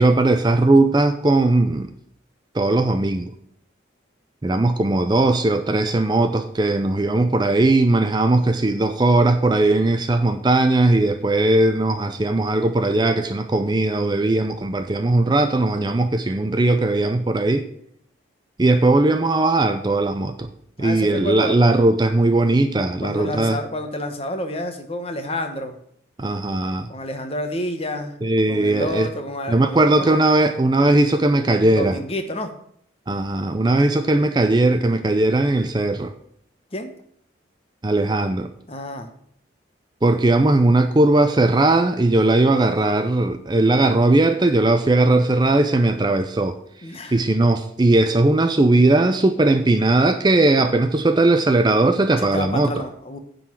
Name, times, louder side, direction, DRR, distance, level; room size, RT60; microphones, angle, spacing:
voice 1, 0.0-1.9 2.5-3.3 4.4-17.7 18.6-20.5 20.8-23.6 26.2-26.9 28.2-29.1 29.5-32.0 33.1-36.1 37.8-38.5 40.0-52.8, right 2 dB, 20° right, 0.4 m, -18 dB
voice 2, 20.8-21.6 23.0-25.8 26.9-28.2 28.5-30.6 31.6-32.5 36.7-36.9 38.7-39.1 46.8-47.2 52.2-53.2, left 1 dB, 30° left, 1.0 m, -29 dB
9.9 x 4.0 x 7.4 m
head